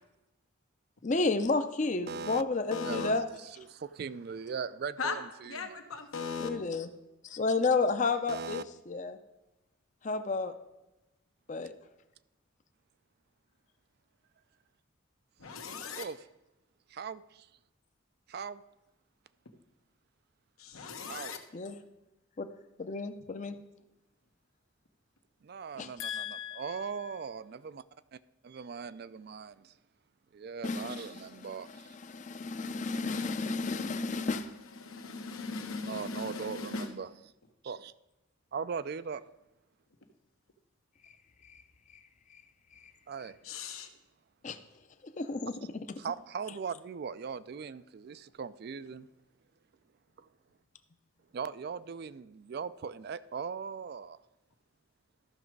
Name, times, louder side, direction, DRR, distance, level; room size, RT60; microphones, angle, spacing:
voice 1, 1.0-3.3 6.4-6.9 7.2-9.2 10.0-10.5 11.5-11.7 21.5-21.8 22.4-22.5 22.8-23.6 25.8-25.9 30.6-31.1 32.0-34.5 44.4-44.6 45.2-45.8, left 3 dB, 35° left, 0.5 m, -31 dB
voice 2, 2.1-2.4 2.8-5.8 8.3-8.6 16.0-16.2 16.9-17.5 18.3-18.6 21.1-21.3 25.4-27.8 28.1-29.7 30.3-32.0 35.8-37.1 37.6-37.9 38.5-39.2 43.1-43.6 46.0-49.1 50.2-50.3 51.3-54.2, right 6 dB, 50° right, 0.3 m, -40 dB
voice 3, 2.7-3.1 5.0-5.2 5.4-6.5 15.4-16.0 20.6-21.4 26.0-27.2 33.1-34.3 34.6-36.9 43.4-43.9, left 5 dB, 90° left, 1.2 m, -39 dB
13.5 x 6.0 x 4.6 m
head